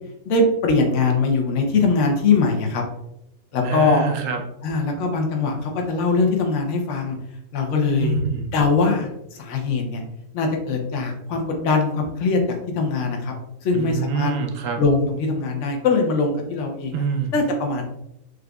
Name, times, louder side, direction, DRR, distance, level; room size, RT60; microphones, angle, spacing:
voice 1, 0.3-2.8 3.5-4.1 4.6-7.2 7.5-8.1 8.5-10.0 10.3-13.3 13.6-14.3 14.8-17.0 17.3-17.8, left 4 dB, 70° left, 2 dB, 1.0 m, -21 dB
voice 2, 3.6-4.4 8.0-8.5 13.7-14.8 16.9-17.3, right 6 dB, 80° right, 4 dB, 1.0 m, -25 dB
4.9 x 2.4 x 2.2 m, 0.81 s
omnidirectional pair, 1.3 m